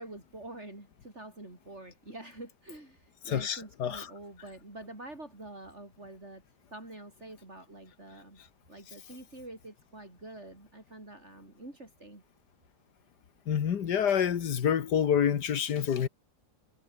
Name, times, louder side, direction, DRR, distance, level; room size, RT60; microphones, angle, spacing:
voice 1, 0.0-6.4 6.7-8.4 8.7-12.2, right 2 dB, 40° right, 6.5 m, -47 dB
voice 2, 3.3-4.1 13.5-16.1, left 8 dB, 85° left, 1.9 m, -27 dB
omnidirectional pair, 1.7 m